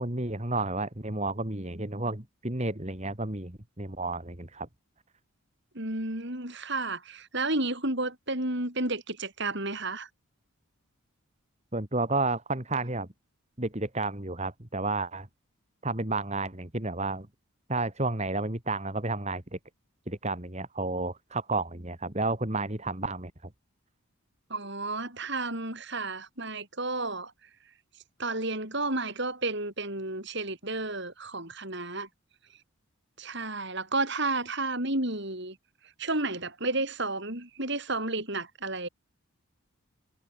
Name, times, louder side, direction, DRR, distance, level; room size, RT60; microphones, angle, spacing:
voice 1, 0.0-4.7 11.7-13.1 13.6-15.3 15.8-17.3 17.7-19.6 20.1-23.3, right 2 dB, 30° right, 2.3 m, -31 dB
voice 2, 5.7-10.1 24.5-27.3 28.2-32.1 33.2-35.6 36.0-38.9, right 2 dB, 50° right, 6.7 m, -32 dB
head